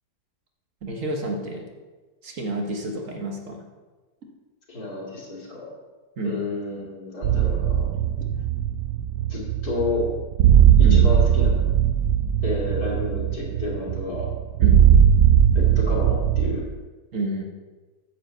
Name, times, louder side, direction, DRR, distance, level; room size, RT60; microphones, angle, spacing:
voice 1, 0.8-1.7 2.2-3.6 6.2-6.4 7.9-8.1 10.8-11.0 14.6-14.8 17.1-17.4, right 1 dB, 55° right, 1 dB, 1.5 m, -29 dB
voice 2, 4.7-5.7 6.2-7.9 9.3-10.0 10.8-11.6 12.4-14.3 15.5-16.7, left 3 dB, 65° left, -4 dB, 3.0 m, -30 dB
sound 1, 7.2-16.6, right 9 dB, 85° right, 1.2 m, -19 dB
9.7 x 5.0 x 7.7 m, 1.3 s
omnidirectional pair, 1.8 m